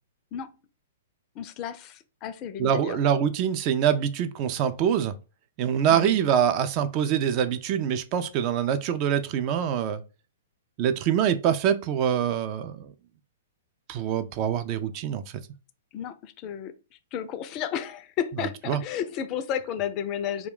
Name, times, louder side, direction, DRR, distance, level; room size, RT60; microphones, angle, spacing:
voice 1, 1.4-3.0 5.9-6.2 15.9-16.7 17.1-20.5, left 9 dB, 35° left, 0.3 m, -32 dB
voice 2, 2.6-5.1 5.6-10.0 10.8-12.9 13.9-15.2 18.4-18.8, right 9 dB, 40° right, 0.3 m, -25 dB
2.3 x 2.1 x 3.7 m
figure-of-eight pair, 115°, 0 cm